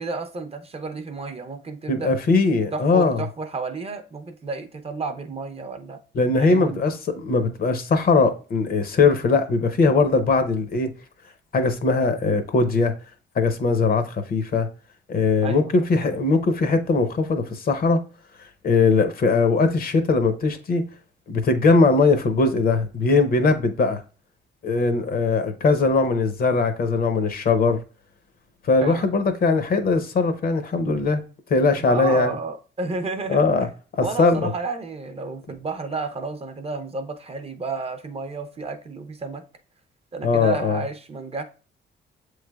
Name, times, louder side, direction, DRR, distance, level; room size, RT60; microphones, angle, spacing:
voice 1, 0.0-2.1 2.7-6.0 6.4-6.8 15.4-15.7 28.8-29.1 31.8-33.5 34.0-39.4 40.1-41.4, right 3 dB, 30° right, 0.6 m, -31 dB
voice 2, 1.9-3.2 6.1-10.9 11.5-12.9 13.4-14.7 15.1-18.0 18.4-20.8 21.3-24.0 24.6-27.8 28.6-31.2 31.5-32.3 33.3-33.7 34.0-34.5 40.2-40.8, left 3 dB, 50° left, 0.6 m, -20 dB
7.2 x 3.2 x 2.3 m
cardioid pair, 90°, 20 cm